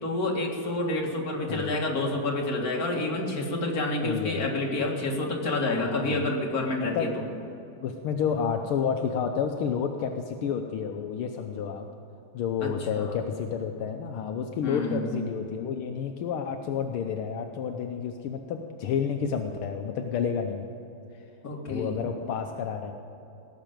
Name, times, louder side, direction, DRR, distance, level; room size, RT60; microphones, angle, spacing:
voice 1, 0.0-7.2 12.6-13.2 14.6-15.1 21.4-22.1, left 2 dB, 45° left, 0 dB, 2.2 m, -29 dB
voice 2, 4.0-4.5 5.8-6.3 6.7-7.1 7.8-11.9 12.3-20.7 21.7-22.9, left 7 dB, 80° left, 4 dB, 1.6 m, -30 dB
18.0 x 6.8 x 9.0 m, 2.8 s
omnidirectional pair, 2.4 m